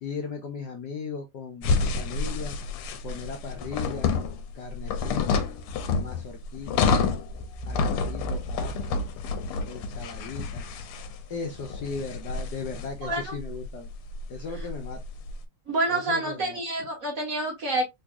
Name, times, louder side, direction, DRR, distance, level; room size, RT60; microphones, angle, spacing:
voice 1, 0.0-2.5 3.0-4.1 4.5-5.5 6.0-7.0 7.6-9.0 9.7-10.7 11.3-13.9 14.3-15.0 15.9-16.6, left 5 dB, 65° left, 1.1 m, -37 dB
sound 1, 1.6-15.4, left 4 dB, 90° left, 1.5 m, -29 dB
sound 2, 7.3-10.1, equal, 75° right, 1.3 m, -41 dB
voice 2, 13.0-13.3 14.6-14.7 15.7-17.8, right 2 dB, 50° right, 1.2 m, -28 dB
4.0 x 2.7 x 2.3 m
omnidirectional pair, 2.4 m